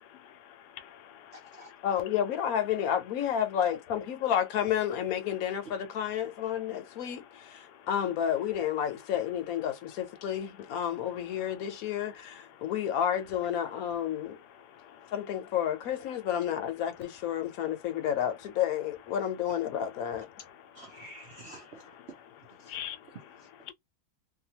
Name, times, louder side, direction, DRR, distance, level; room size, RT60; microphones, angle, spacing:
voice 1, 0.0-1.8 7.7-7.9 14.7-15.1 20.7-20.8 21.2-21.3 22.6-23.0 23.7-23.8, left 10 dB, 90° left, 1.2 m, -45 dB
voice 2, 1.3-1.7 20.7-22.2 22.6-22.8 23.1-23.5, right 2 dB, 55° right, 0.8 m, -49 dB
voice 3, 1.8-14.4 15.1-20.3, left 9 dB, 70° left, 1.1 m, -31 dB
2.7 x 2.3 x 2.8 m
omnidirectional pair, 1.7 m